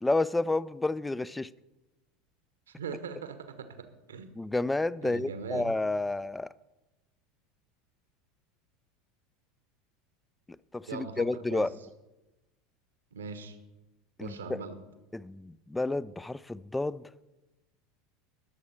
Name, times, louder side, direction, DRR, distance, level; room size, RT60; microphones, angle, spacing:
voice 1, 0.0-1.5 4.4-6.5 10.7-11.7 14.2-14.6 15.1-17.0, left 2 dB, 10° left, 0.4 m, -30 dB
voice 2, 2.7-4.3 5.0-5.7 10.9-11.7 13.1-13.6 14.2-14.8, right 6 dB, 70° right, 1.1 m, -40 dB
20.0 x 7.3 x 4.4 m
figure-of-eight pair, 75°, 0 cm